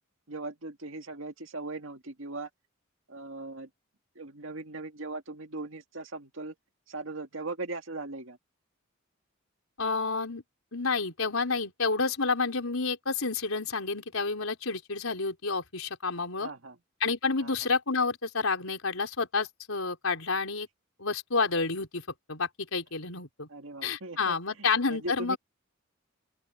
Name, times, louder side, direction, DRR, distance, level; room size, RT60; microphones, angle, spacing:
voice 1, 0.3-2.5 3.1-3.7 4.2-6.5 6.9-8.4 16.4-16.8 17.4-17.7 23.5-25.4, right 2 dB, 70° right, 2.2 m, -39 dB
voice 2, 9.8-10.4 10.7-16.5 17.0-20.7 21.0-22.0 22.3-23.5 23.8-25.4, left 4 dB, 90° left, 4.2 m, -29 dB
open air
head